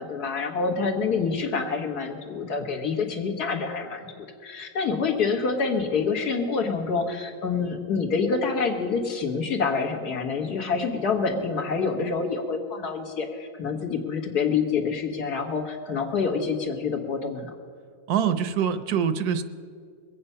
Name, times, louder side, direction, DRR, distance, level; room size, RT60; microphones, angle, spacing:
voice 1, 0.0-17.5, left 5 dB, 85° left, 2 dB, 2.0 m, -27 dB
voice 2, 18.1-19.4, right 8 dB, 80° right, 11 dB, 1.3 m, -24 dB
22.0 x 8.7 x 5.6 m, 2.2 s
omnidirectional pair, 1.6 m